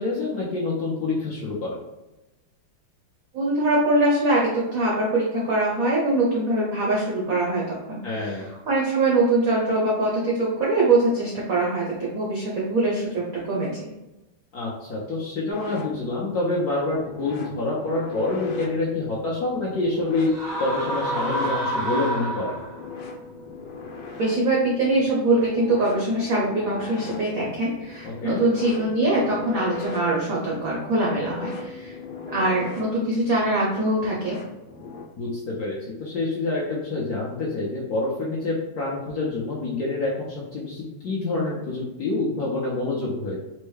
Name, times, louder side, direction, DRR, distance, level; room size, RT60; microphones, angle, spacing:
voice 1, 0.0-1.8 8.0-8.4 14.5-20.3 20.6-22.6 28.0-28.4 35.2-43.4, left 2 dB, 65° left, -6 dB, 0.9 m, -27 dB
voice 2, 3.3-4.4 4.7-8.4 8.7-13.9 24.2-32.0 32.3-34.4, right 2 dB, 75° right, -4 dB, 0.7 m, -23 dB
sound 1, 15.5-35.0, left 4 dB, 85° left, 1.5 m, -38 dB
sound 2, 20.3-22.9, right 1 dB, 45° right, 0.6 m, -28 dB
4.4 x 2.1 x 3.2 m, 1.0 s
omnidirectional pair, 2.4 m